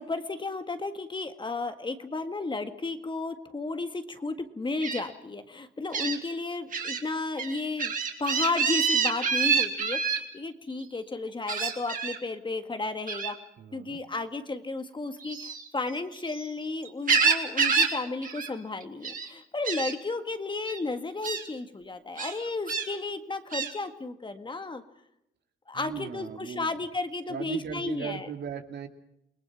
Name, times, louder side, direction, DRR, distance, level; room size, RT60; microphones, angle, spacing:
voice 1, 0.0-7.9 8.2-13.4 13.7-24.8 25.7-28.3, left 3 dB, 25° left, 8 dB, 1.8 m, -33 dB
Gull seagull, 4.8-5.0 5.9-6.2 6.7-7.0 7.4-10.2 11.5-12.2 13.1-13.4 15.2-16.5 16.8-18.0 18.2-18.5 18.8-19.3 19.7-19.9 20.7-20.8 21.2-21.4 22.2-22.9 23.5-23.7, right 5 dB, 45° right, 3.6 m, -27 dB
voice 2, 13.6-14.0 25.7-26.8 27.3-28.9, right 7 dB, 60° right, 6 dB, 2.4 m, -37 dB
28.5 x 19.0 x 6.0 m, 0.79 s
cardioid pair, 90°, 20 cm